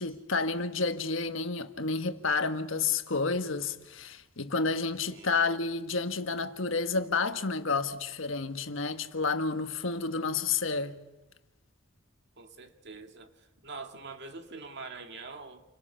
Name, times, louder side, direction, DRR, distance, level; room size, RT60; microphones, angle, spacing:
voice 1, 0.0-11.0, left 4 dB, 70° left, 1.4 m, -30 dB
voice 2, 5.1-5.5 12.4-13.3 13.6-15.6, right 3 dB, 55° right, 2.1 m, -44 dB
29.0 x 24.5 x 5.7 m
head